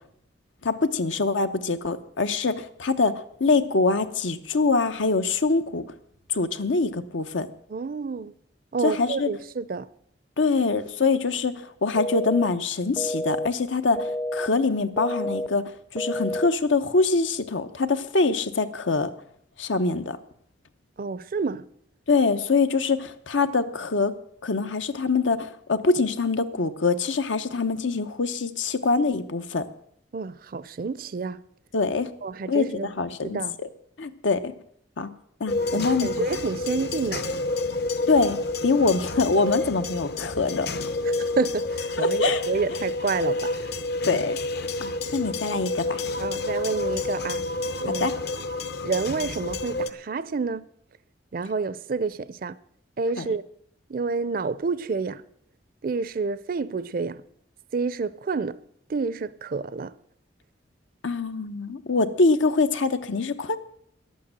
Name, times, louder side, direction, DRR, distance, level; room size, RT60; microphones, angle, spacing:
voice 1, 0.6-5.8 6.3-7.5 8.8-9.3 10.4-11.5 11.8-15.6 15.9-19.1 19.6-20.2 22.1-24.1 24.4-29.7 31.7-32.1 32.5-33.7 34.0-34.5 35.0-35.1 35.4-36.1 38.1-40.7 42.0-42.4 44.1-44.4 44.8-46.0 48.0-48.1 53.2-53.3 61.0-63.6, left 3 dB, 85° left, 0.9 m, -24 dB
voice 2, 7.7-8.3 8.7-9.9 21.0-21.6 30.1-31.4 32.2-32.9 33.2-33.6 35.7-37.3 41.0-43.7 46.2-47.4 47.8-48.1 48.8-50.6 51.3-52.6 53.0-53.4 53.9-55.2 55.8-57.2 57.7-58.6 58.9-60.0, right 4 dB, 50° right, 0.4 m, -29 dB
sound 1, 12.0-12.5 13.0-13.5 14.0-14.5 15.0-15.5 16.0-16.5, left 1 dB, 10° left, 0.4 m, -29 dB
sound 2, 35.5-49.9, left 2 dB, 60° left, 0.8 m, -29 dB
11.5 x 8.6 x 8.8 m
head